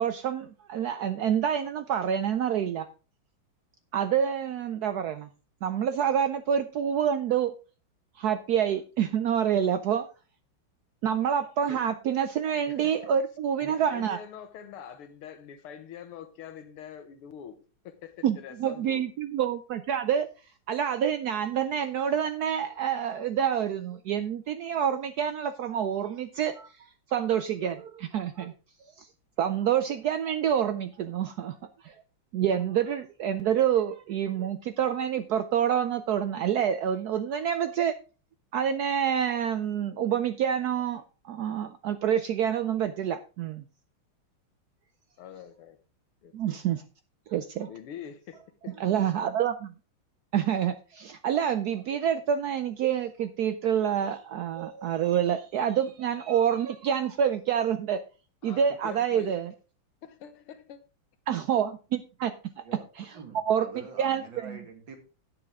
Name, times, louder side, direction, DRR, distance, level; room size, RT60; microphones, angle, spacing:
voice 1, 0.0-2.9 3.9-5.3 5.6-7.5 8.2-10.1 11.0-14.2 18.2-20.3 20.7-28.5 29.0-29.1 29.4-31.5 31.8-31.9 32.3-37.9 38.5-43.6 46.3-46.8 47.3-47.7 48.8-49.7 50.3-58.0 58.4-59.5 61.3-62.3 63.5-63.7 64.0-64.6, right 9 dB, 85° right, 0.8 m, -27 dB
voice 2, 13.6-17.6 17.8-19.0 45.2-45.8 46.2-46.6 47.7-48.8 58.4-59.4 60.0-60.8, left 8 dB, 90° left, 2.1 m, -44 dB
voice 3, 63.1-65.0, right 4 dB, 60° right, 2.8 m, -45 dB
11.0 x 9.0 x 3.5 m
omnidirectional pair, 2.3 m